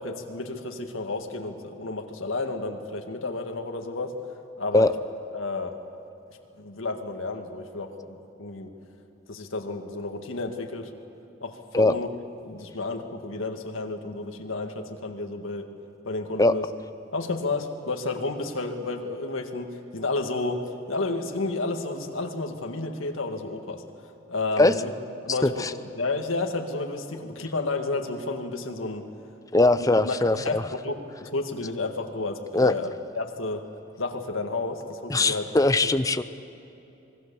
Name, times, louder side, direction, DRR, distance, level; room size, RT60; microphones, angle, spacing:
voice 1, 0.0-4.1 4.6-4.9 5.3-5.8 6.6-8.7 9.3-10.9 11.4-12.1 12.5-15.7 16.0-16.7 17.1-20.6 20.9-23.8 24.3-24.9 25.2-25.7 26.0-29.0 29.8-33.6 34.0-35.4, left 3 dB, 85° left, 4 dB, 1.9 m, -31 dB
voice 2, 29.5-30.6 32.5-32.8 35.1-36.2, left 2 dB, 15° left, 12 dB, 0.6 m, -20 dB
26.5 x 21.0 x 7.0 m, 2.9 s
head